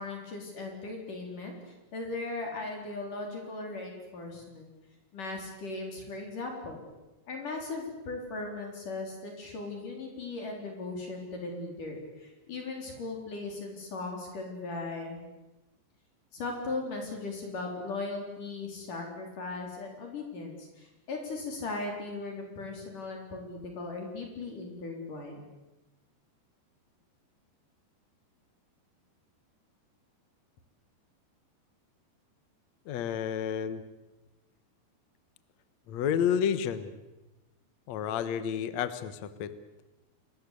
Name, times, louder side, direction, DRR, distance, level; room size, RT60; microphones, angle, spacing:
voice 1, 0.0-1.5 1.9-4.7 5.1-6.8 7.3-15.2 16.3-25.5, left 3 dB, 45° left, 2 dB, 5.3 m, -38 dB
voice 2, 32.8-33.8 35.9-36.9 37.9-39.5, left 8 dB, 70° left, 12 dB, 1.7 m, -30 dB
29.0 x 21.0 x 8.4 m, 1.0 s
omnidirectional pair, 5.2 m